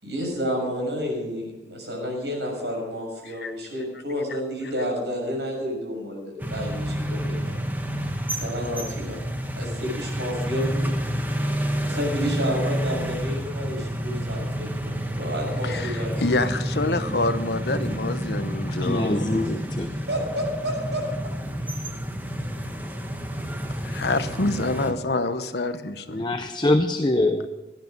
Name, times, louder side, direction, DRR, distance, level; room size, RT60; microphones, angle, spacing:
voice 1, 0.0-7.6 8.3-9.2 9.6-10.9 11.8-16.3 20.1-21.0, equal, 80° right, 0 dB, 6.8 m, -30 dB
sound 1, 6.4-24.9, equal, 10° right, 1.4 m, -29 dB
voice 2, 15.6-19.5 23.8-26.3, left 2 dB, 70° left, 10 dB, 0.9 m, -27 dB
voice 3, 18.7-19.9 26.1-27.5, left 1 dB, 25° left, 7 dB, 0.6 m, -24 dB
16.5 x 12.0 x 5.3 m, 1.1 s
head